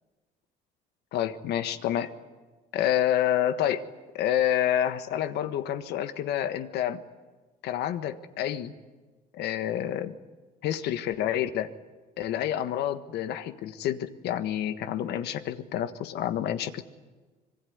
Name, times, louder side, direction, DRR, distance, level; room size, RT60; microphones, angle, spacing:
voice 1, 1.1-2.1 2.7-3.8 4.1-7.0 7.6-8.7 9.3-10.1 10.6-11.7 12.2-16.8, left 11 dB, 75° left, 11 dB, 1.5 m, -28 dB
25.0 x 22.0 x 9.6 m, 1.3 s
cardioid pair, 110°, 17 cm